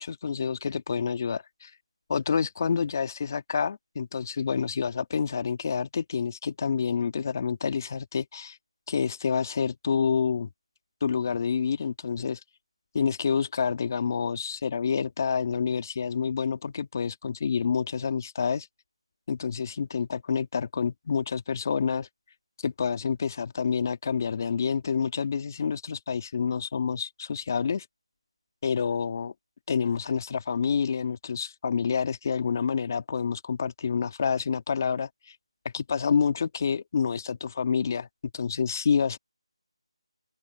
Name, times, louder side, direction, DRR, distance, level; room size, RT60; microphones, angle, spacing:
voice 1, 0.0-1.7 2.1-8.6 8.9-10.5 11.0-12.4 12.9-18.7 19.3-22.1 22.6-27.9 28.6-29.3 29.7-35.4 35.7-38.1 38.3-39.2, left 6 dB, 35° left, 2.6 m, -28 dB
open air
figure-of-eight pair, 170°, 3 cm